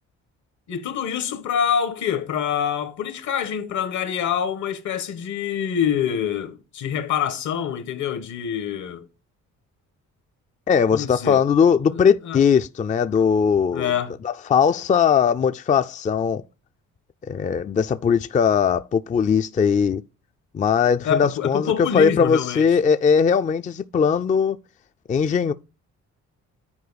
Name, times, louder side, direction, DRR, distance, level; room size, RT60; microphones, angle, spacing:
voice 1, 0.7-9.0 10.9-11.4 11.9-12.0 12.2-12.4 13.7-14.1 21.0-22.6, left 8 dB, 75° left, 1.3 m, -26 dB
voice 2, 10.7-13.9 14.2-16.4 17.2-20.0 20.5-24.6 25.1-25.5, left 6 dB, 25° left, 0.4 m, -19 dB
9.5 x 4.6 x 4.0 m
cardioid pair, 90°, 30 cm